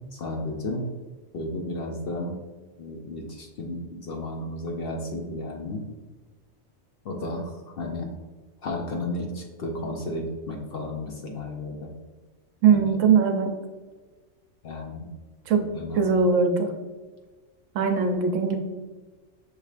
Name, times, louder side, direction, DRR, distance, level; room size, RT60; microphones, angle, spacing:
voice 1, 0.1-0.8 1.3-2.4 2.8-5.8 7.0-8.1 8.6-11.9 12.7-12.8 14.6-15.1 15.6-16.1, left 2 dB, 60° left, 1 dB, 0.7 m, -33 dB
voice 2, 12.6-13.5 15.5-15.6 15.9-16.7 17.7-18.6, right 5 dB, 75° right, 5 dB, 0.9 m, -20 dB
6.4 x 3.2 x 2.4 m, 1.3 s
omnidirectional pair, 1.4 m